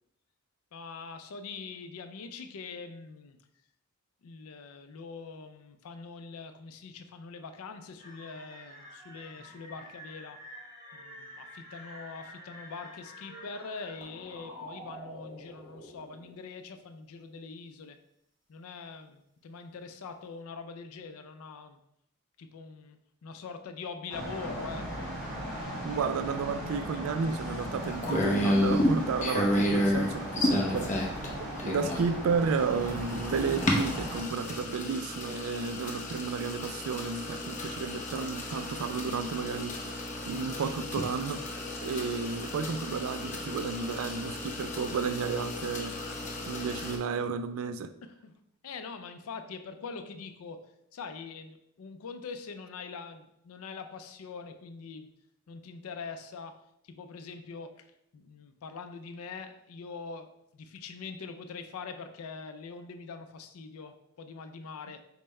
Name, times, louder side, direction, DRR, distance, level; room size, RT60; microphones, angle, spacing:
voice 1, 0.7-3.4 4.2-10.4 10.9-18.0 18.5-21.8 22.4-25.1 48.0-48.3 48.6-55.1 55.5-57.9 58.1-65.0, left 4 dB, 75° left, 0.4 m, -43 dB
sound 1, 8.0-16.3, equal, 20° right, 1.0 m, -48 dB
sound 2, 24.1-34.2, equal, ahead, 1.1 m, -37 dB
voice 2, 25.8-31.1 31.4-39.8 40.3-41.4 41.8-45.9 46.5-47.9, right 5 dB, 70° right, 0.3 m, -32 dB
sound 3, 27.4-47.0, left 1 dB, 35° left, 0.6 m, -32 dB
5.4 x 2.1 x 4.2 m
head